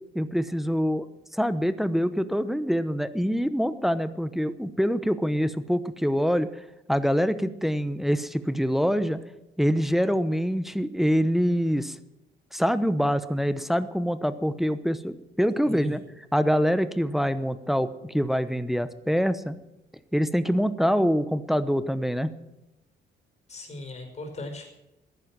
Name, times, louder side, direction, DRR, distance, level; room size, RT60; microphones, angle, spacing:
voice 1, 0.1-1.0 1.3-6.5 6.9-9.2 9.6-12.0 12.5-16.0 16.3-19.6 20.1-22.3, equal, ahead, 12 dB, 0.9 m, -25 dB
voice 2, 15.7-16.0 23.5-24.7, left 2 dB, 35° left, 3 dB, 5.3 m, -38 dB
15.0 x 11.0 x 7.6 m, 0.93 s
cardioid pair, 90°, 20 cm